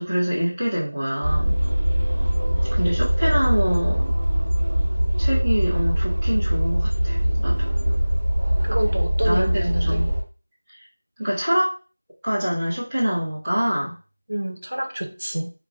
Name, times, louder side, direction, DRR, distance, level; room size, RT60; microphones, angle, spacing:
voice 1, 0.0-1.5 2.7-4.0 5.2-7.7 9.2-10.1 10.7-10.8 11.2-11.8 12.2-13.9, equal, 5° right, -14 dB, 1.1 m, -25 dB
sound 1, 1.2-10.2, equal, 40° right, 1.3 m, -22 dB
voice 2, 8.7-10.0 14.3-15.5, right 1 dB, 85° right, 3 dB, 1.0 m, -28 dB
4.6 x 2.2 x 3.6 m, 0.34 s
figure-of-eight pair, 180°, 0 cm